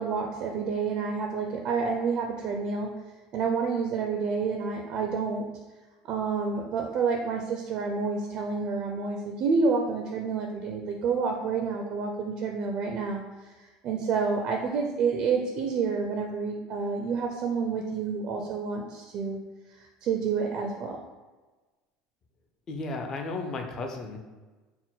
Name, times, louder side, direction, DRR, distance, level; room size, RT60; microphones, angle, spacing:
voice 1, 0.0-2.9 3.3-5.4 6.1-13.2 13.8-19.4 20.0-21.0, right 5 dB, 40° right, 2 dB, 0.4 m, -29 dB
voice 2, 22.7-24.2, left 3 dB, 25° left, 3 dB, 0.4 m, -34 dB
4.2 x 2.1 x 4.0 m, 1.2 s
cardioid pair, 165°, 2 cm